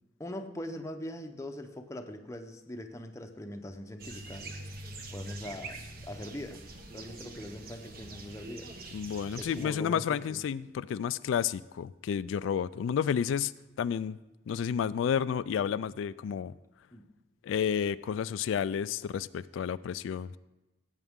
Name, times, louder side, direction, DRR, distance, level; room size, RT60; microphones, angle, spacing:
voice 1, 0.2-4.5 5.1-6.6 6.9-8.7 9.4-10.4 16.9-17.1, left 1 dB, 15° left, 5 dB, 0.7 m, -42 dB
sound 1, 4.0-9.7, right 2 dB, 50° right, 1.1 m, -44 dB
voice 2, 8.9-13.5 13.8-14.2 14.5-16.5 17.4-20.4, left 8 dB, 90° left, 15 dB, 0.3 m, -31 dB
17.0 x 8.2 x 3.6 m, 1.0 s
head